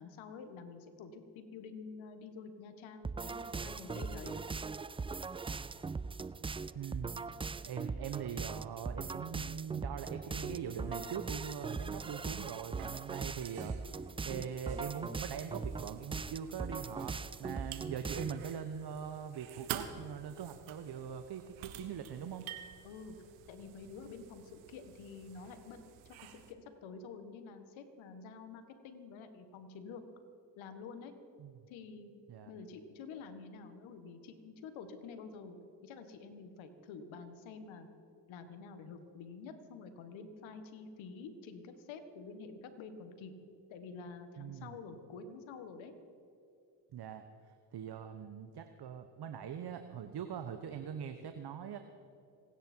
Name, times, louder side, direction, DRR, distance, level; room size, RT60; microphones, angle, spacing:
voice 1, 0.0-4.3 22.8-23.2 23.5-25.8 26.1-30.0 30.6-31.1 31.7-32.1 32.5-35.6 35.8-37.9 38.3-43.3 43.7-45.9, left 5 dB, 80° left, 8 dB, 1.9 m, -48 dB
sound 1, 3.0-18.6, right 4 dB, 15° right, 0.3 m, -40 dB
voice 2, 6.7-22.5 31.4-31.6 32.3-32.5 44.4-44.8 46.9-51.8, right 8 dB, 55° right, 8 dB, 1.1 m, -42 dB
sound 2, 10.3-26.5, right 11 dB, 85° right, 1.2 m, -51 dB
26.5 x 10.0 x 4.6 m, 2.7 s
supercardioid pair, 60°, 47 cm